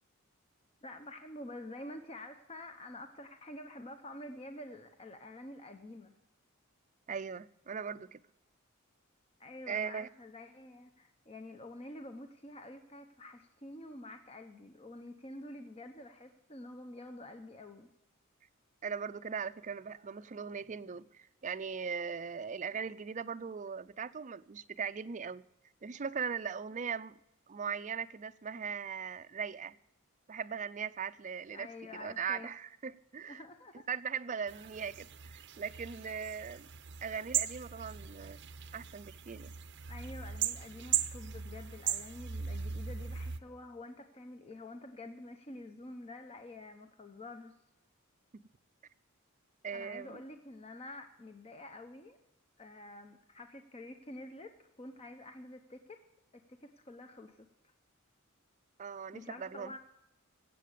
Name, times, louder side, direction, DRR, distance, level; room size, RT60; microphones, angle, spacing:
voice 1, 0.8-6.1 9.4-17.9 31.5-32.5 33.3-33.9 39.9-47.5 49.7-52.2 52.6-56.0 56.6-57.5 59.1-59.8, left 1 dB, 30° left, 0.9 m, -48 dB
voice 2, 7.1-8.2 9.7-10.1 18.8-25.4 25.8-27.2 27.5-29.8 30.3-31.7 31.9-33.4 33.9-36.7 37.0-38.4 38.7-39.5 48.3-48.4 49.6-50.2 58.8-59.8, right 6 dB, 35° right, 0.5 m, -39 dB
sound 1, 34.5-43.4, right 9 dB, 55° right, 0.8 m, -38 dB
17.0 x 7.5 x 6.6 m
head